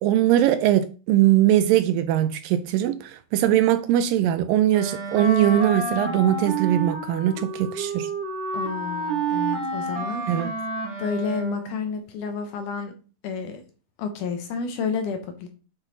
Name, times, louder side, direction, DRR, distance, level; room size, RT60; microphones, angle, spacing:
voice 1, 0.0-8.1 10.3-10.5, right 12 dB, 80° right, 2.1 m, -21 dB
Wind instrument woodwind instrument, 4.7-11.9, right 3 dB, 60° right, 3.3 m, -29 dB
voice 2, 8.5-10.2 11.0-12.9 13.2-13.6 14.0-15.5, left 5 dB, 70° left, 2.2 m, -30 dB
8.1 x 5.4 x 4.0 m
omnidirectional pair, 4.2 m